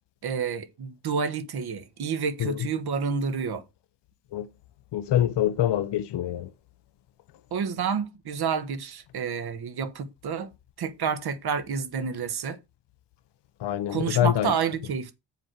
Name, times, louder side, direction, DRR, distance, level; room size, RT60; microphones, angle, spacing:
voice 1, 0.2-3.6 7.5-10.5 10.8-12.6 13.9-15.1, right 6 dB, 60° right, 1.4 m, -29 dB
voice 2, 4.9-6.5 13.6-14.5, left 11 dB, 70° left, 0.8 m, -25 dB
7.5 x 4.5 x 6.3 m
wide cardioid pair, 175°, 44 cm